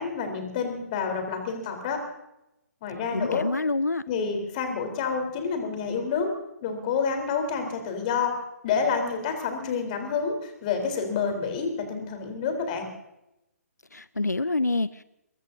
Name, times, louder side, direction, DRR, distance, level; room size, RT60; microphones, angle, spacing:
voice 1, 0.0-2.0 2.8-3.5 4.1-6.3 6.6-8.3 8.6-12.9, left 5 dB, 30° left, 4 dB, 3.9 m, -28 dB
voice 2, 3.1-4.0 13.9-15.0, left 2 dB, 85° left, 16 dB, 0.6 m, -27 dB
22.5 x 21.5 x 2.8 m, 0.89 s
figure-of-eight pair, 135°, 9 cm